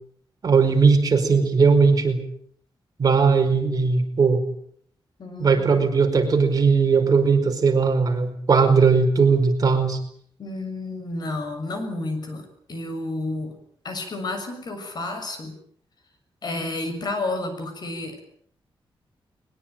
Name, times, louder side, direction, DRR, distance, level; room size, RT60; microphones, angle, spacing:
voice 1, 0.4-2.2 3.0-4.4 5.4-10.0, right 5 dB, 40° right, 4 dB, 5.0 m, -18 dB
voice 2, 5.2-5.9 10.4-13.5 13.8-15.5 16.4-18.2, left 2 dB, 50° left, 7 dB, 6.7 m, -31 dB
22.0 x 21.5 x 8.9 m, 0.63 s
wide cardioid pair, 165°, 9 cm